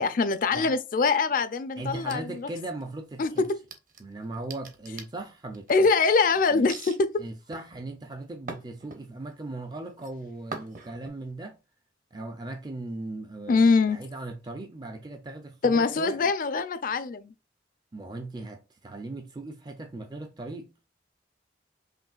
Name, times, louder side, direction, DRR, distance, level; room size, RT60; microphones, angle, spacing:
voice 1, 0.0-2.5 3.2-3.6 5.7-7.1 13.5-14.0 15.6-17.3, left 4 dB, 50° left, 0.4 m, -23 dB
voice 2, 1.8-3.4 4.0-5.9 6.5-6.7 7.2-11.6 12.1-16.3 17.9-20.7, right 2 dB, 25° right, 0.4 m, -38 dB
sound 1, 1.9-2.9 3.4-6.0 6.7-7.0 7.5-9.3 9.7-10.1 10.5-11.1, right 4 dB, 50° right, 0.9 m, -43 dB
5.1 x 3.0 x 2.3 m
head